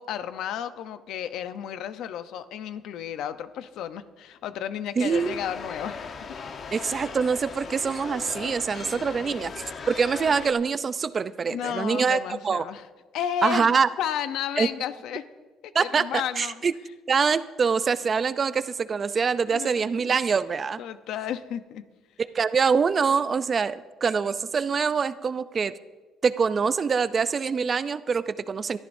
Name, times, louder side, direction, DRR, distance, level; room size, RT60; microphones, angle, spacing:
voice 1, 0.0-6.3 6.7-6.8 8.8-9.6 11.5-12.8 13.1-15.2 15.8-16.6 19.5-20.2 20.8-21.8, left 9 dB, 75° left, 11 dB, 0.7 m, -33 dB
voice 2, 5.0-5.4 6.7-12.6 13.4-13.9 14.6-14.7 15.7-16.7 17.1-20.8 22.2-25.7 26.2-28.8, right 5 dB, 30° right, 14 dB, 0.5 m, -25 dB
sound 1, 5.1-10.5, left 5 dB, 40° left, 1.1 m, -38 dB
22.0 x 13.5 x 2.7 m, 1.3 s
cardioid pair, 135°, 0 cm